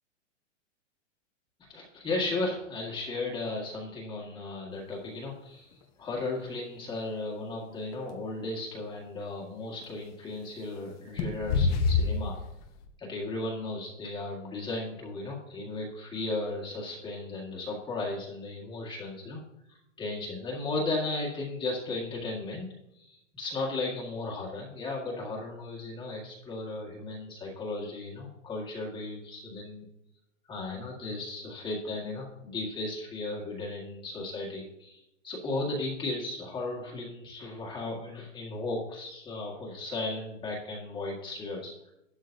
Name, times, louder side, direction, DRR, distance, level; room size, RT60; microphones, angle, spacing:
voice 1, 1.6-12.4 13.0-19.4 19.7-29.9 30.5-41.9, left 2 dB, 10° left, -2 dB, 1.7 m, -35 dB
sound 1, 5.7-5.8 7.9-8.0 9.8-9.9 11.1-12.9, left 4 dB, 30° left, 0.9 m, -26 dB
12.5 x 12.0 x 2.7 m, 0.85 s
supercardioid pair, 165°, 38 cm